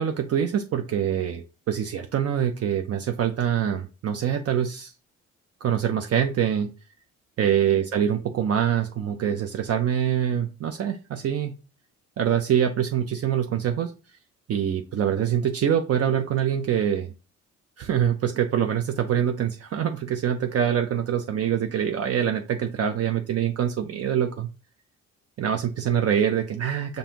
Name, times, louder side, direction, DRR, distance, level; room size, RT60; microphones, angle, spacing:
voice 1, 0.0-4.9 5.6-6.7 7.4-11.6 12.2-13.9 14.5-17.1 17.8-24.5 25.4-27.0, right 9 dB, 55° right, 5 dB, 0.6 m, -25 dB
5.3 x 2.5 x 2.8 m, 0.32 s
cardioid pair, 90°, 30 cm